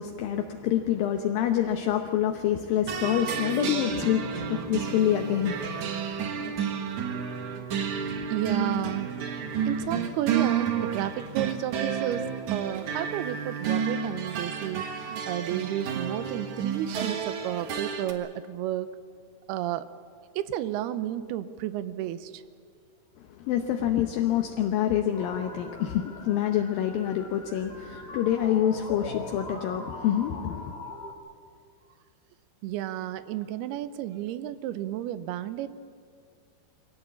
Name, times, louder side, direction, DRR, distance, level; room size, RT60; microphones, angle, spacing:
voice 1, 0.0-5.7 23.3-30.7, left 10 dB, 75° left, 4 dB, 2.5 m, -27 dB
sound 1, 2.9-18.1, right 7 dB, 60° right, 2.5 m, -31 dB
voice 2, 8.3-9.2 9.7-18.9 19.5-19.9 20.4-22.4 32.6-35.7, right 12 dB, 85° right, 13 dB, 2.7 m, -32 dB
sound 2, 25.1-31.1, left 2 dB, 35° left, 1.0 m, -41 dB
23.5 x 17.0 x 8.5 m, 2.2 s
omnidirectional pair, 4.5 m